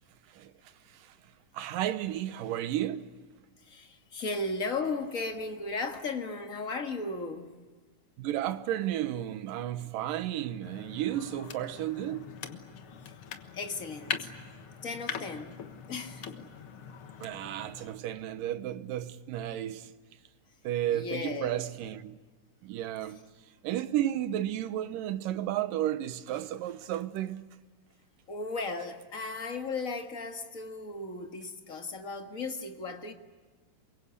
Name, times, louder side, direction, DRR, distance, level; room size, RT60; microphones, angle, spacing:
voice 1, 1.5-3.1 8.2-12.3 17.2-19.9 20.6-22.2 22.6-23.2 23.6-27.4, right 12 dB, 80° right, 2.6 m, -33 dB
voice 2, 3.6-7.6 13.5-14.3 14.8-15.6 15.9-16.5 20.9-21.7 28.3-33.1, left 3 dB, 35° left, 1.5 m, -36 dB
sound 1, 10.6-18.0, left 7 dB, 55° left, 1.7 m, -42 dB
28.5 x 24.0 x 8.3 m
omnidirectional pair, 3.9 m